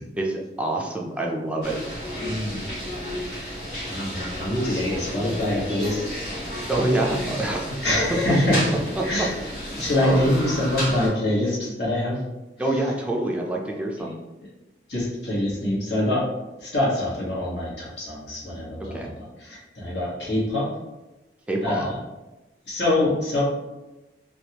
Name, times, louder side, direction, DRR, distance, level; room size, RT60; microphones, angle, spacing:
voice 1, 0.1-1.8 6.7-7.7 9.0-9.3 10.0-10.2 12.6-14.1 18.9-19.1 21.5-21.9, right 2 dB, 5° right, -1 dB, 0.3 m, -26 dB
sound 1, 1.6-11.1, equal, 60° left, 1.5 m, -32 dB
voice 2, 2.2-2.6 3.3-6.1 6.4-6.7 7.2-7.4 7.7-8.8 9.0-9.4 9.7-12.2 13.7-13.8 14.9-16.2 16.6-20.7 21.6-22.0 22.7-23.4, left 1 dB, 75° left, -5 dB, 1.2 m, -25 dB
3.4 x 2.3 x 2.8 m, 1.0 s
head